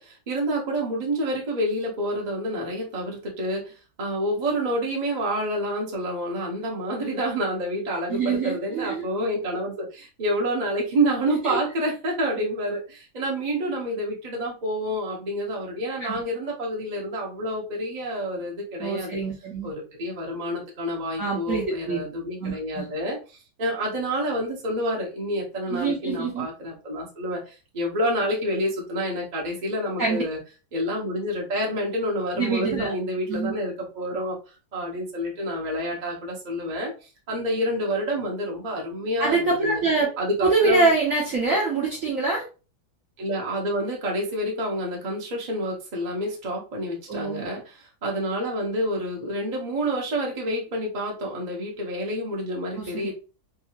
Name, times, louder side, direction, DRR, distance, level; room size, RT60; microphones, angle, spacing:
voice 1, 0.0-19.2 19.6-30.4 30.7-34.4 34.7-39.8 40.2-40.9 43.2-53.1, equal, 30° right, -2 dB, 0.8 m, -28 dB
voice 2, 8.1-9.0 11.4-11.6 16.0-16.2 18.8-19.7 21.2-22.0 22.4-22.9 25.7-26.5 30.0-30.2 32.4-32.9 33.3-33.5 39.2-40.1 40.4-42.4 47.1-47.5 52.8-53.1, right 3 dB, 55° right, -4 dB, 1.0 m, -25 dB
3.7 x 2.7 x 2.8 m, 0.33 s
omnidirectional pair, 2.2 m